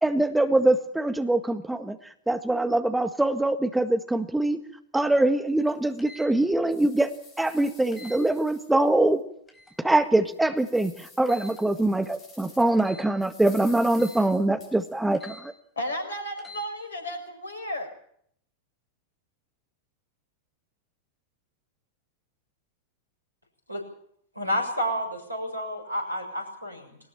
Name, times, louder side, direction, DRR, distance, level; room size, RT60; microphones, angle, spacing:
voice 1, 0.0-2.0 2.3-4.6 4.9-7.1 7.4-9.2 9.8-15.5, right 2 dB, 5° right, 1.7 m, -23 dB
sound 1, 5.1-5.2 5.7-5.8 6.3-9.1 9.6-9.7 10.2-12.9 13.2-15.1, left 3 dB, 30° left, 7.9 m, -51 dB
sound 2, 6.0-6.3 7.9-8.2 9.5-9.8 11.3-11.6 12.8-13.1 13.9-14.2 15.1-15.4 16.4-16.7, left 2 dB, 10° left, 4.0 m, -46 dB
voice 2, 15.8-17.9, equal, 70° left, 5.2 m, -33 dB
voice 3, 24.3-27.0, equal, 85° right, 6.6 m, -30 dB
21.0 x 19.0 x 7.3 m
figure-of-eight pair, 90°, 0 cm